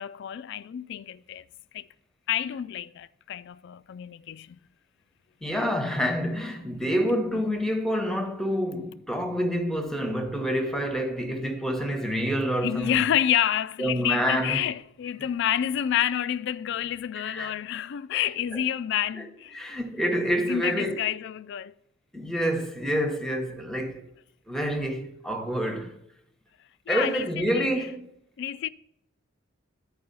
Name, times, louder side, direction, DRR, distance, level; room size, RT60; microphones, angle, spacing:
voice 1, 0.0-1.4 1.7-1.9 2.3-4.6 12.6-19.6 20.5-21.7 26.9-27.9 28.4-28.7, left 10 dB, 60° left, 0.3 m, -29 dB
voice 2, 5.4-13.0 13.8-14.6 17.2-17.5 19.1-19.2 19.5-21.1 22.1-24.0 24.5-25.9 26.9-28.1, equal, 5° left, 0.9 m, -27 dB
11.5 x 4.8 x 5.3 m
head